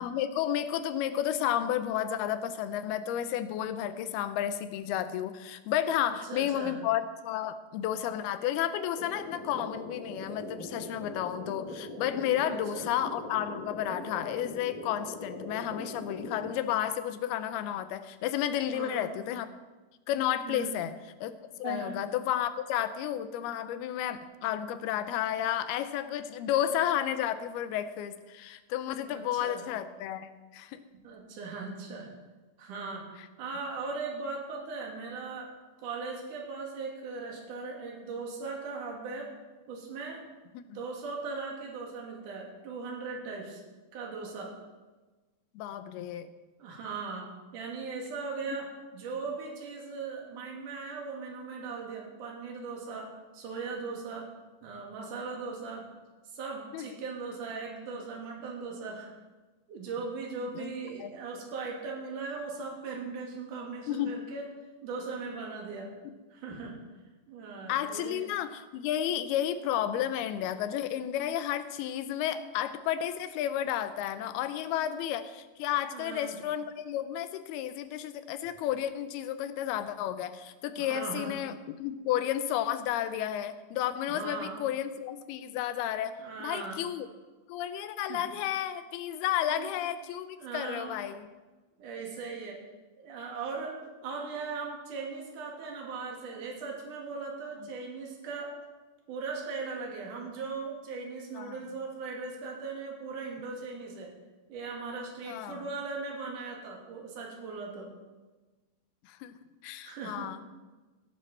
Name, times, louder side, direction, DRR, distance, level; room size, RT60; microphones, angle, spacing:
voice 1, 0.0-19.5 20.1-21.0 21.2-30.8 40.5-40.8 45.6-46.3 48.5-48.6 56.7-56.9 60.6-60.7 61.0-61.1 63.9-64.2 67.7-87.1 87.5-91.3 101.4-101.6 105.2-105.6 109.0-109.4 109.6-110.4, left 11 dB, 90° left, 11 dB, 2.7 m, -32 dB
voice 2, 6.0-6.8 12.4-12.9 18.7-19.2 20.5-20.7 21.6-22.0 29.1-29.7 31.0-32.1 32.6-33.1 33.4-35.5 35.8-39.3 39.7-40.2 40.7-43.6 43.9-44.5 46.6-54.3 54.6-55.8 56.3-59.1 59.7-64.5 64.8-65.9 66.3-66.7 67.3-68.3 74.7-74.8 75.9-76.4 80.8-81.4 84.1-84.6 86.2-86.8 88.1-88.2 89.5-89.8 90.4-91.0 91.8-92.6 93.0-98.5 99.1-104.1 104.5-107.9 109.9-110.3, right 4 dB, 60° right, -1 dB, 3.7 m, -39 dB
sound 1, 9.0-16.5, left 1 dB, 15° left, 1.7 m, -41 dB
17.0 x 10.5 x 4.3 m, 1.2 s
omnidirectional pair, 4.4 m